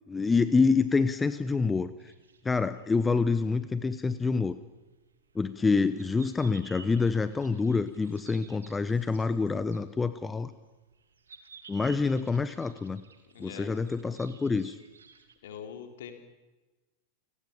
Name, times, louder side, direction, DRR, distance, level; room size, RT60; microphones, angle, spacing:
voice 1, 0.1-2.1 2.4-4.6 5.3-10.5 11.7-13.0 13.4-14.8, left 4 dB, 15° left, 14 dB, 1.0 m, -27 dB
sound 1, 2.0-15.3, right 5 dB, 70° right, 2.7 m, -55 dB
voice 2, 13.3-13.7 15.4-16.1, left 8 dB, 60° left, 6 dB, 3.8 m, -43 dB
29.5 x 18.5 x 8.9 m, 1.2 s
figure-of-eight pair, 90°, 0 cm